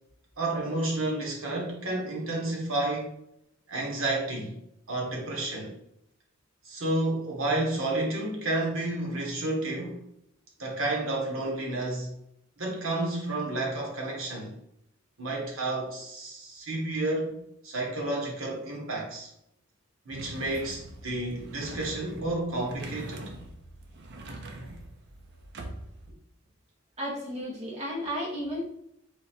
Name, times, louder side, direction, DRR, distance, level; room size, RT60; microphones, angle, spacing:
voice 1, 0.4-3.1 3.7-4.5 4.9-5.7 6.6-10.0 10.6-12.1 12.6-14.5 15.2-19.3 20.0-23.3, right 2 dB, 85° right, -1 dB, 1.4 m, -31 dB
sound 1, 20.1-26.1, right 2 dB, 60° right, 0.7 m, -43 dB
voice 2, 27.0-28.6, equal, 35° right, -5 dB, 1.4 m, -33 dB
4.1 x 2.8 x 4.3 m, 0.78 s
head